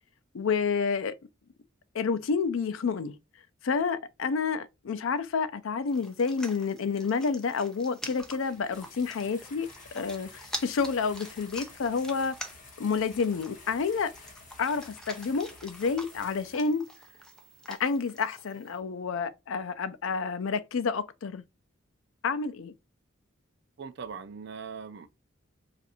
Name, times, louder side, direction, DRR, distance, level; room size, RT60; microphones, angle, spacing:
voice 1, 0.3-1.1 1.9-3.2 3.6-9.7 9.9-12.4 12.8-14.1 14.6-16.9 17.7-21.4 22.2-22.7, left 5 dB, 80° left, 0.4 m, -29 dB
sound 1, 5.9-18.8, equal, 5° left, 0.4 m, -46 dB
sound 2, 8.2-16.5, left 3 dB, 40° left, 1.0 m, -51 dB
voice 2, 23.8-25.1, right 6 dB, 55° right, 0.4 m, -40 dB
2.5 x 2.5 x 4.1 m
head